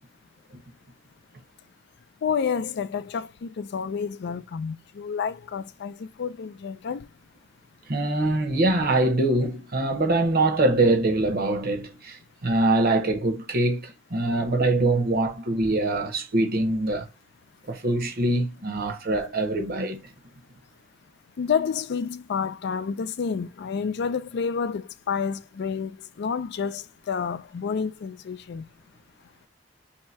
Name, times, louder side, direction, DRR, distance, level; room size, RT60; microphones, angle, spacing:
voice 1, 2.2-7.1 21.4-28.7, left 6 dB, 60° left, 0.4 m, -29 dB
voice 2, 7.9-17.1 17.7-20.0, right 2 dB, 50° right, 0.9 m, -23 dB
3.1 x 2.8 x 4.5 m
head